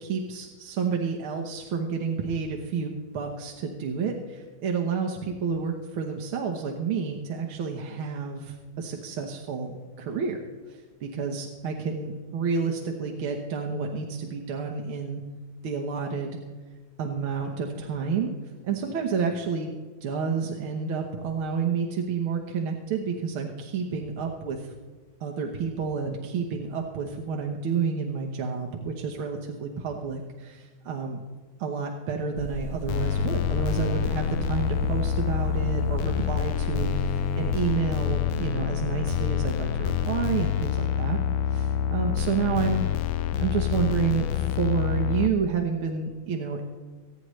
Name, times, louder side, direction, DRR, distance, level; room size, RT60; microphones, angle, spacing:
voice 1, 0.0-10.4 10.7-15.2 15.6-16.3 17.0-18.3 18.6-19.7 20.0-24.7 25.2-31.2 31.6-41.2 41.5-42.8 43.4-46.6, right 5 dB, 75° right, 1 dB, 2.0 m, -30 dB
sound 1, 32.4-37.7, equal, 10° left, 1.2 m, -35 dB
sound 2, 32.9-45.3, left 9 dB, 90° left, 1.6 m, -27 dB
24.5 x 9.5 x 3.2 m, 1.4 s
omnidirectional pair, 2.4 m